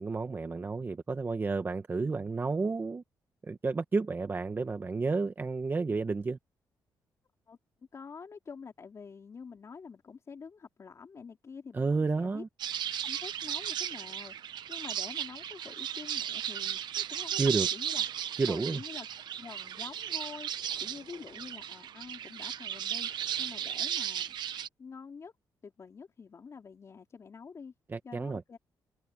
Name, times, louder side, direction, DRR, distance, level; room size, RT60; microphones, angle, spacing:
voice 1, 0.0-3.0 3.4-6.4 11.7-12.5 17.4-17.7 18.4-18.8 27.9-28.4, right 4 dB, 25° right, 1.1 m, -31 dB
voice 2, 7.9-12.4 13.0-18.0 18.5-19.1 19.4-24.4 24.8-25.3 25.6-27.7 28.0-28.6, left 5 dB, 40° left, 4.0 m, -47 dB
sound 1, 12.6-24.7, right 10 dB, 75° right, 1.0 m, -35 dB
cardioid pair, 115°, 8 cm